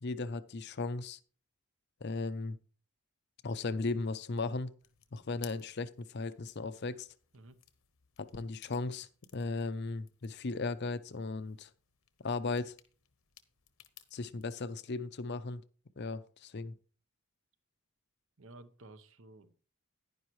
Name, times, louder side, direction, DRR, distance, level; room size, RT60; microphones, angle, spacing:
voice 1, 0.0-1.2 2.0-2.6 3.4-4.7 5.1-7.1 8.2-11.7 12.2-12.7 14.1-15.6 16.0-16.7, left 3 dB, 50° left, 0.6 m, -36 dB
sound 1, 4.8-14.5, left 13 dB, 65° left, 1.0 m, -60 dB
voice 2, 18.4-19.5, right 2 dB, 60° right, 0.9 m, -54 dB
10.5 x 10.0 x 3.1 m
head